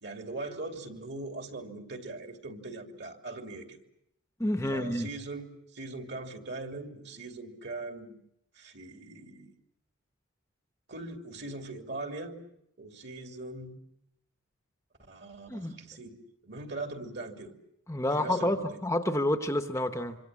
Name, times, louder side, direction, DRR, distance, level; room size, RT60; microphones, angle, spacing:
voice 1, 0.0-3.8 4.7-8.2 8.5-9.5 10.9-12.4 12.8-13.8 15.1-17.5 18.1-18.8, right 2 dB, 55° right, 5 dB, 2.9 m, -41 dB
voice 2, 4.4-5.1 15.5-15.8 17.9-20.2, left 1 dB, 15° left, 7 dB, 1.0 m, -29 dB
26.5 x 25.5 x 7.5 m, 0.78 s
head